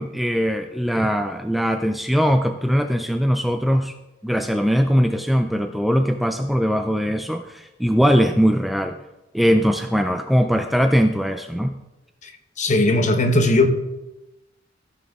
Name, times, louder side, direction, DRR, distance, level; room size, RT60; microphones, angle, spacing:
voice 1, 0.0-3.9 4.2-9.0 9.3-11.7, equal, ahead, 0.3 m, -20 dB
voice 2, 12.6-13.7, left 2 dB, 40° left, 0.9 m, -17 dB
14.0 x 6.3 x 3.5 m
head